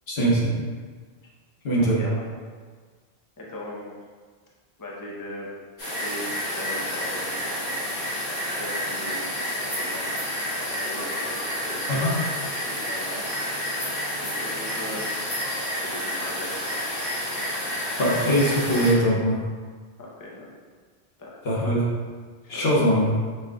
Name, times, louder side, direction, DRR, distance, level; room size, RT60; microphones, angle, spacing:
voice 1, 0.1-0.5 1.6-2.0 11.9-12.1 18.0-19.4 21.4-21.9 22.5-23.1, equal, 70° left, -5 dB, 1.2 m, -21 dB
voice 2, 1.8-2.3 3.4-4.0 4.8-5.6 6.0-7.8 8.5-9.4 9.6-10.3 10.7-12.2 12.6-13.3 14.2-15.2 15.8-16.5 20.0-20.5 21.2-21.4 22.4-22.8, left 1 dB, 20° left, -4 dB, 0.6 m, -38 dB
sound 1, 5.8-18.9, equal, 55° left, 1.8 m, -29 dB
5.7 x 2.3 x 3.6 m, 1.5 s
omnidirectional pair, 1.1 m